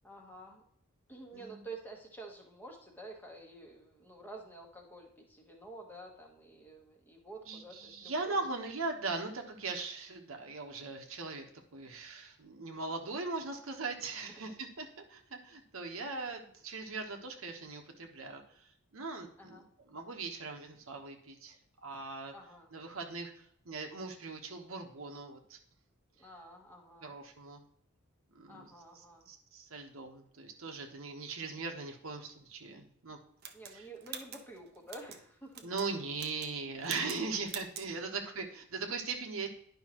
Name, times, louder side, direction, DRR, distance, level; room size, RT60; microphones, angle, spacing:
voice 1, 0.0-0.6 1.1-8.4 14.3-14.4 15.3-15.4 19.4-19.7 22.3-22.7 26.2-27.2 28.5-29.3 33.5-35.7 38.0-38.2, right 2 dB, 10° left, 1 dB, 1.2 m, -50 dB
voice 2, 1.3-1.6 7.5-21.6 21.8-22.3 22.7-25.6 27.0-27.6 28.3-33.2 33.7-33.9 35.6-39.5, right 3 dB, 70° right, 4 dB, 1.1 m, -40 dB
sound 1, 33.4-35.2 35.5-35.9 36.1-36.6 36.8-37.2 37.5-37.9, right 8 dB, 45° right, 0.7 m, -45 dB
10.5 x 5.5 x 3.0 m, 0.65 s
head